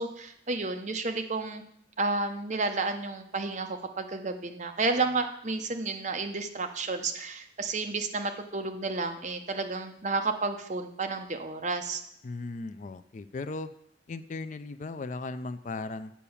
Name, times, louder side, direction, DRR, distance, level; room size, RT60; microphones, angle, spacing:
voice 1, 0.0-1.6 2.0-12.0, right 3 dB, 40° right, 6 dB, 0.8 m, -31 dB
voice 2, 12.2-13.7 14.1-16.1, left 3 dB, 40° left, 11 dB, 0.4 m, -37 dB
8.4 x 5.8 x 7.1 m, 0.71 s
head